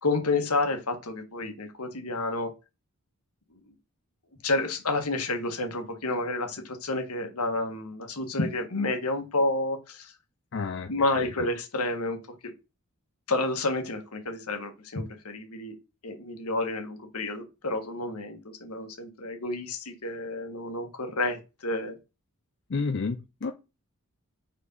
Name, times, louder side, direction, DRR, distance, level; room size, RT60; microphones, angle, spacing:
voice 1, 0.0-2.5 4.4-10.1 10.9-12.2 12.4-12.5 13.3-15.7 16.0-22.0, left 2 dB, 85° left, 5 dB, 1.5 m, -30 dB
voice 2, 10.5-10.9 11.2-11.5 22.7-23.5, left 4 dB, 50° left, 7 dB, 0.5 m, -31 dB
4.7 x 4.4 x 5.4 m, 0.27 s
head